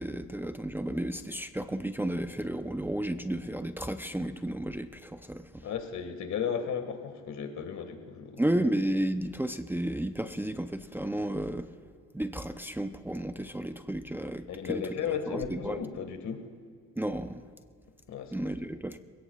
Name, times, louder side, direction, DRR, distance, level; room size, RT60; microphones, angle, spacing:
voice 1, 0.0-5.6 8.4-11.7 12.1-14.8 15.3-15.8 17.0-17.4 18.3-19.0, right 1 dB, 5° right, 8 dB, 0.6 m, -32 dB
voice 2, 5.6-8.4 13.4-13.5 14.5-16.5 18.1-18.4, left 7 dB, 70° left, 6 dB, 1.8 m, -35 dB
27.0 x 17.0 x 2.4 m, 2.1 s
cardioid pair, 90°, 30 cm